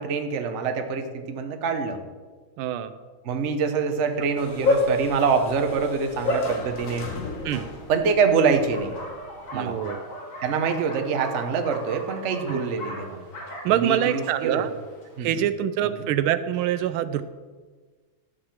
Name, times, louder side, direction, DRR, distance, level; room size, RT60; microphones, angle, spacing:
voice 1, 0.0-2.0 3.2-7.1 7.9-8.9 9.5-9.8 10.4-13.2 13.7-14.7 15.2-15.5 15.8-16.1, right 5 dB, 45° right, 6 dB, 1.0 m, -25 dB
voice 2, 2.6-2.9 7.4-7.7 9.5-10.0 12.5-12.6 13.5-14.7 15.2-17.2, right 10 dB, 85° right, 12 dB, 1.4 m, -25 dB
Bark, 3.9-15.2, left 2 dB, 65° left, 3.1 m, -32 dB
sound 1, 4.4-9.6, left 3 dB, 45° left, 1.3 m, -40 dB
13.0 x 4.8 x 7.3 m, 1.4 s
omnidirectional pair, 2.3 m